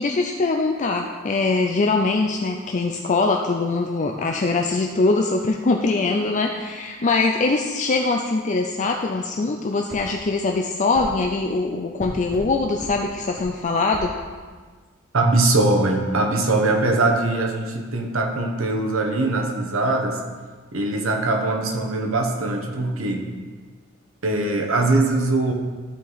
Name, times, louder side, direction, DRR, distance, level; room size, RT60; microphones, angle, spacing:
voice 1, 0.0-14.1, left 3 dB, 35° left, 2 dB, 0.5 m, -22 dB
sound 1, 9.9-10.1 10.9-11.1 12.0-12.5 12.8-13.0 13.4-13.5 13.9-14.1, equal, 20° right, 1.6 m, -35 dB
voice 2, 15.1-20.2 20.7-23.3 24.2-25.5, right 2 dB, 80° right, 3 dB, 1.2 m, -21 dB
13.5 x 4.7 x 4.1 m, 1.5 s
head